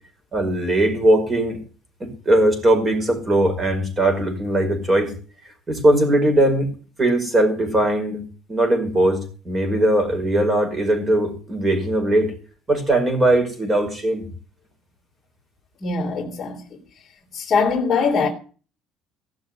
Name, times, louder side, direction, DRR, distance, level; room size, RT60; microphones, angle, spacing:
voice 1, 0.3-1.6 2.0-5.1 5.7-6.7 7.0-8.2 8.5-12.3 12.7-14.2, right 1 dB, 20° right, 5.1 m, -19 dB
voice 2, 15.8-16.6 17.3-18.3, left 5 dB, 25° left, 3.4 m, -21 dB
17.5 x 6.5 x 9.5 m
cardioid pair, 155°, 0 cm